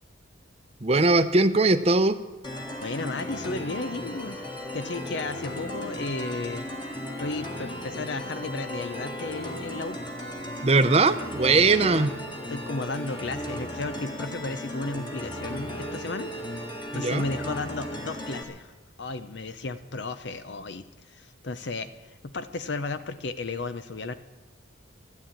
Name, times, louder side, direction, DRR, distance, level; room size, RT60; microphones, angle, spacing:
voice 1, 0.8-2.2 10.6-12.1 16.9-17.3, right 3 dB, 30° right, 10 dB, 0.7 m, -20 dB
sound 1, 2.4-18.4, equal, 25° left, 1.7 m, -36 dB
voice 2, 2.8-4.4 4.7-6.7 7.2-10.0 11.8-12.1 12.5-24.1, left 3 dB, 60° left, 12 dB, 0.7 m, -34 dB
13.0 x 11.0 x 8.9 m, 1.2 s
head